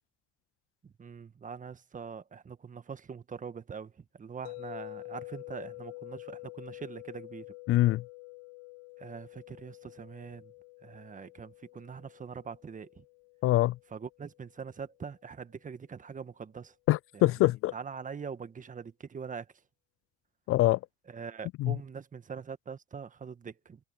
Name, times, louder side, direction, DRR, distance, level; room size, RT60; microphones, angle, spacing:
voice 1, 0.8-7.4 9.0-10.5 10.8-13.0 13.9-16.7 17.1-17.2 17.7-19.5 21.1-23.8, right 6 dB, 25° right, 1.5 m, -43 dB
sound 1, 4.4-14.5, left 28 dB, 90° left, 3.5 m, -48 dB
voice 2, 7.7-8.0 13.4-13.7 16.9-17.7 20.5-20.8 21.6-21.8, left 17 dB, 50° left, 0.4 m, -24 dB
supercardioid pair, 90°, 29 cm